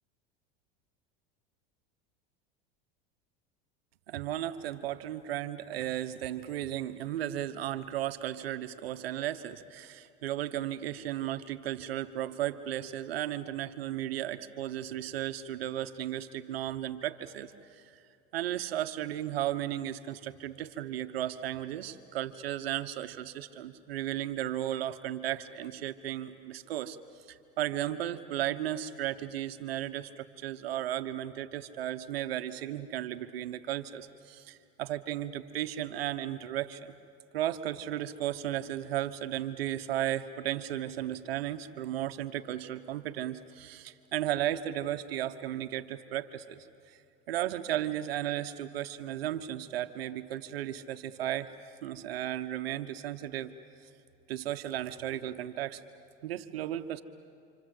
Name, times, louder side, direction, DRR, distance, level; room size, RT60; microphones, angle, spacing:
voice 1, 4.1-18.0 18.3-27.0 27.3-36.9 37.3-47.0 47.3-51.5 51.8-53.5 54.3-55.8 56.2-57.0, right 12 dB, 85° right, 10 dB, 1.1 m, -35 dB
28.5 x 26.5 x 7.8 m, 2.6 s
supercardioid pair, 105°, 29 cm